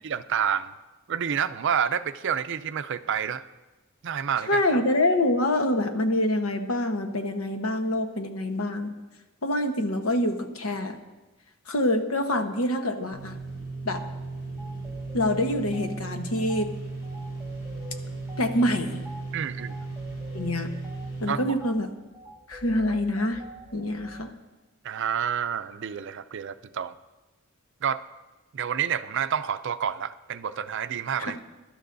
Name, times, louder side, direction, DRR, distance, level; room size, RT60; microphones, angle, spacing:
voice 1, 0.0-0.7 1.1-3.4 4.0-4.6 19.3-19.7 21.3-21.6 24.8-26.9 27.8-28.0 28.5-31.4, right 8 dB, 60° right, 11 dB, 0.5 m, -29 dB
voice 2, 4.5-8.9 9.4-11.0 11.7-13.4 13.8-14.0 15.1-16.7 18.4-19.0 20.3-20.7 21.2-21.9 22.5-23.4 23.7-24.3 31.2-31.3, left 1 dB, 80° left, 6 dB, 1.1 m, -26 dB
sound 1, 13.1-21.3, right 3 dB, 45° left, 4.4 m, -36 dB
sound 2, 13.9-14.1 14.6-24.3, equal, ahead, 0.9 m, -47 dB
23.0 x 12.0 x 2.6 m, 1.1 s
head